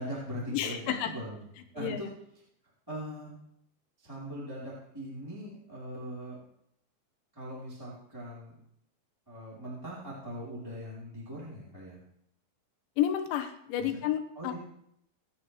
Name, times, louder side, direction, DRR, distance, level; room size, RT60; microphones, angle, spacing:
voice 1, 0.0-1.4 1.7-2.1 2.9-3.3 4.0-6.4 7.3-8.6 9.3-12.0 13.9-14.0 14.3-14.6, equal, 5° right, -8 dB, 3.3 m, -40 dB
voice 2, 0.5-1.1 1.8-2.0 13.0-14.6, left 10 dB, 85° left, 7 dB, 3.5 m, -30 dB
27.5 x 9.5 x 3.4 m, 0.74 s
omnidirectional pair, 5.2 m